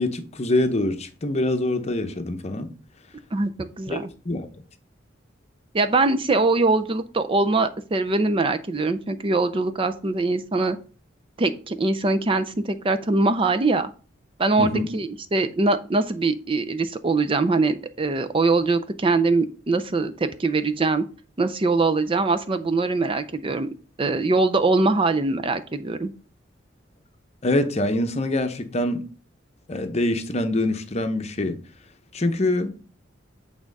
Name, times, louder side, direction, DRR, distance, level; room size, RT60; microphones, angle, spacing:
voice 1, 0.0-2.7 3.9-4.0 4.3-4.5 14.6-14.9 27.4-29.0 29.7-31.6 32.1-32.7, left 1 dB, 35° left, 0.8 m, -24 dB
voice 2, 3.3-4.1 5.7-10.8 11.4-13.9 14.4-21.0 21.4-23.7 24.0-26.1, right 3 dB, 30° right, 0.4 m, -22 dB
8.6 x 3.5 x 5.3 m
head